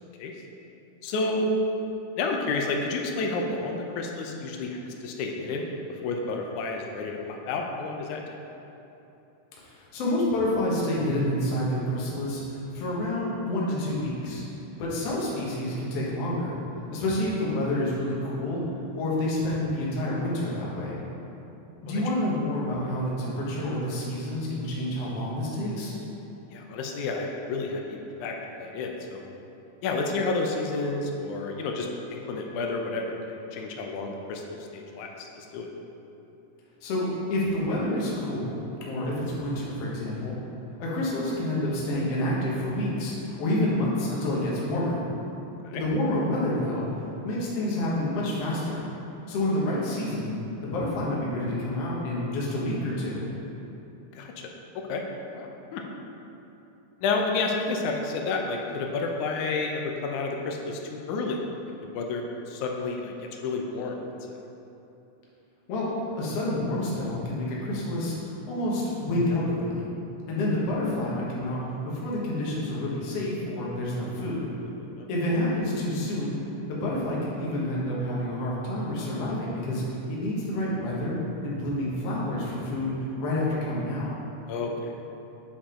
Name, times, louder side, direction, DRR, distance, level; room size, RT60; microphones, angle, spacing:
voice 1, 1.0-1.5 2.2-5.7 6.0-8.2 14.8-14.9 21.9-22.0 26.5-29.3 29.8-35.7 45.6-45.8 54.1-54.5 54.8-55.0 55.3-55.8 57.0-60.8 61.1-61.4 61.8-64.0 74.8-75.1 84.5-84.9, left 3 dB, 75° left, 1 dB, 2.0 m, -30 dB
voice 2, 9.6-14.4 14.8-16.6 16.9-18.6 19.0-21.0 21.8-25.9 36.8-40.4 40.8-45.0 45.7-46.9 47.2-48.8 49.3-50.3 50.6-53.2 65.7-65.9 66.2-68.2 68.5-69.9 70.3-71.6 71.9-74.5 75.1-76.3 76.7-84.1, left 1 dB, 60° left, -5 dB, 2.0 m, -28 dB
8.4 x 4.9 x 3.7 m, 3.0 s
omnidirectional pair, 3.7 m